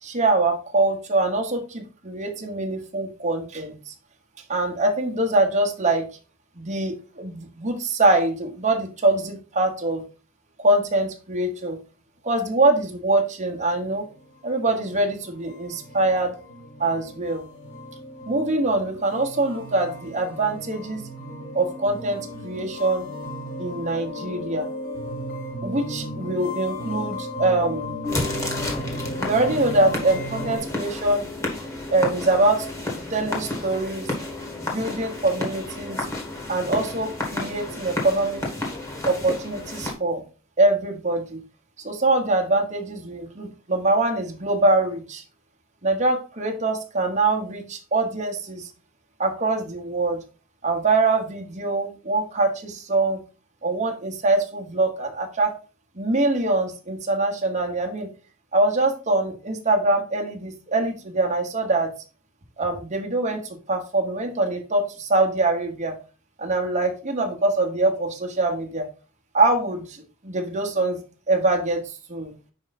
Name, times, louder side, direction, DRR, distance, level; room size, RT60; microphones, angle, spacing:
voice 1, 0.0-3.9 4.5-6.1 6.6-10.0 10.6-11.8 12.2-14.0 14.4-16.3 16.8-17.5 18.3-21.0 21.5-23.1 23.6-24.7 25.6-27.9 29.2-31.2 31.9-32.7 33.1-34.1 34.6-36.1 36.5-38.4 39.0-40.2 40.6-41.4 41.8-45.2 45.8-48.7 49.2-50.2 50.6-53.2 53.6-55.5 56.0-58.1 58.5-61.9 62.6-66.0 66.4-68.9 69.3-71.0 71.3-71.8 72.1-72.3, right 2 dB, 35° right, 3 dB, 1.2 m, -23 dB
sound 1, 13.6-30.6, left 1 dB, 60° left, 3.9 m, -35 dB
sound 2, 28.0-39.9, left 2 dB, 15° left, 1.6 m, -31 dB
5.4 x 4.8 x 4.0 m, 0.34 s
head